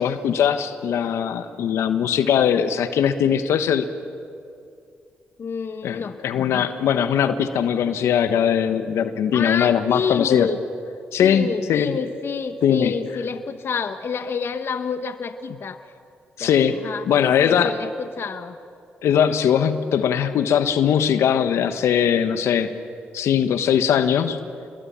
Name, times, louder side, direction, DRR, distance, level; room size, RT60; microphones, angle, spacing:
voice 1, 0.0-3.9 5.8-10.5 11.1-12.0 12.6-12.9 16.4-17.7 19.0-22.7 23.1-24.4, left 8 dB, 75° left, 10 dB, 1.3 m, -20 dB
voice 2, 5.4-6.7 9.3-10.6 11.2-15.8 16.4-16.5 16.8-18.6, left 6 dB, 55° left, 9 dB, 1.1 m, -28 dB
28.5 x 22.0 x 8.9 m, 2.4 s
supercardioid pair, 50°, 5 cm